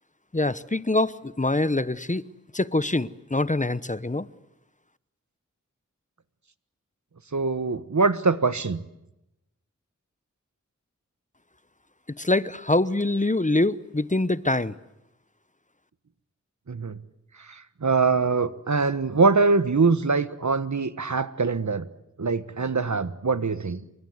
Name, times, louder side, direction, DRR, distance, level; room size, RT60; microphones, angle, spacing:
voice 1, 0.3-2.2 2.5-4.3 12.2-14.7, left 2 dB, 25° left, 16 dB, 0.9 m, -24 dB
voice 2, 7.3-8.8 16.7-17.0 17.8-21.9 22.2-23.8, right 4 dB, 70° right, 13 dB, 1.3 m, -23 dB
28.5 x 24.0 x 8.0 m, 0.90 s
wide cardioid pair, 55°, 30 cm